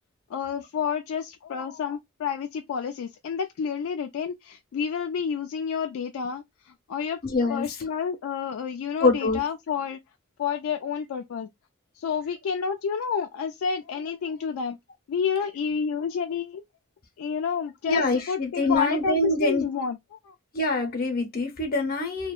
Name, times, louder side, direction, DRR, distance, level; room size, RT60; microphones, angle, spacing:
voice 1, 0.3-6.4 6.9-7.2 7.5-10.0 10.4-11.5 12.0-14.8 15.1-16.6 17.2-20.3, left 6 dB, 75° left, 0.3 m, -29 dB
voice 2, 7.2-7.7 9.0-9.4 17.9-19.7 20.5-22.3, left 2 dB, 45° left, 0.7 m, -25 dB
2.7 x 2.1 x 2.3 m
head